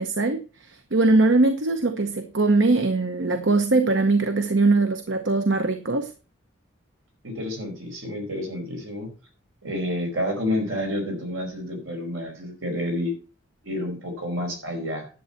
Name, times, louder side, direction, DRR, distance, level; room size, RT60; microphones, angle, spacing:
voice 1, 0.0-6.1, right 3 dB, 65° right, 8 dB, 0.9 m, -21 dB
voice 2, 7.2-9.1 9.6-13.1 13.6-15.1, left 1 dB, 80° right, 2 dB, 5.0 m, -29 dB
11.0 x 7.9 x 4.4 m, 0.34 s
head